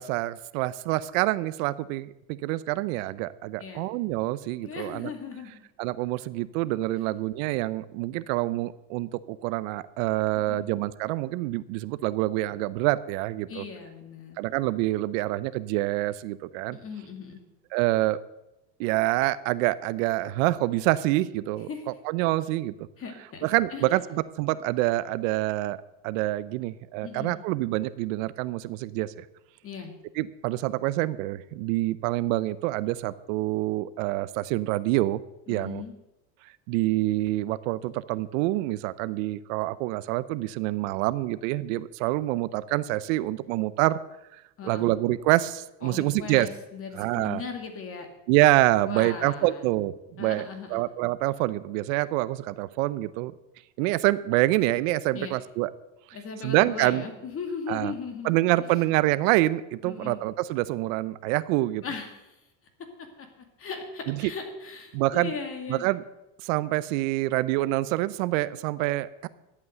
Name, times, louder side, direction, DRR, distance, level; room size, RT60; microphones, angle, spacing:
voice 1, 0.0-5.1 5.8-13.6 14.4-16.8 17.7-18.2 18.8-21.7 22.0-22.7 23.4-25.8 26.0-29.2 30.2-35.2 35.5-35.8 36.7-44.0 44.6-46.5 46.9-47.4 48.3-50.4 50.7-53.3 53.8-55.7 56.4-57.0 57.7-57.9 58.2-61.8 64.1-64.3 64.9-65.3 65.7-66.0 66.4-69.3, right 17 dB, 75° right, 16 dB, 0.7 m, -26 dB
voice 2, 3.6-3.9 4.6-5.6 10.3-10.7 13.5-14.5 16.7-17.4 21.7-21.8 23.0-23.5 23.7-24.0 27.0-27.4 29.6-30.0 35.5-35.9 44.6-44.9 45.8-48.1 48.9-49.7 50.2-50.8 55.1-55.3 56.1-58.7 59.8-60.2 61.8-62.3 63.0-63.3 63.6-65.9, left 5 dB, 35° left, 6 dB, 2.3 m, -38 dB
12.0 x 8.5 x 7.8 m, 0.92 s
supercardioid pair, 125°, 40 cm